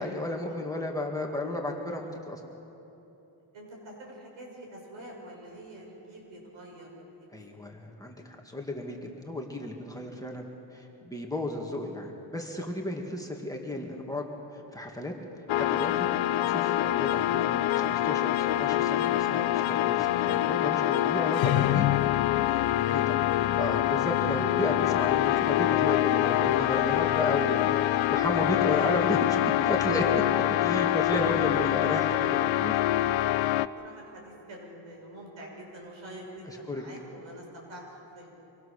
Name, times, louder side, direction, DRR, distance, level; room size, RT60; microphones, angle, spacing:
voice 1, 0.0-2.4 7.3-14.2 14.5-15.1 15.5-16.1 16.4-21.9 22.7-30.0 30.5-32.7 36.5-36.8, left 1 dB, 10° left, 0 dB, 2.0 m, -33 dB
voice 2, 3.5-7.3 22.4-22.7 23.3-23.8 28.5-29.0 29.9-30.1 31.4-31.5 33.8-37.8 38.1-38.5, right 1 dB, 80° right, -1 dB, 7.1 m, -46 dB
sound 1, 15.5-33.7, left 14 dB, 80° left, 0.7 m, -25 dB
25.5 x 23.0 x 6.7 m, 3.0 s
wide cardioid pair, 150°, 46 cm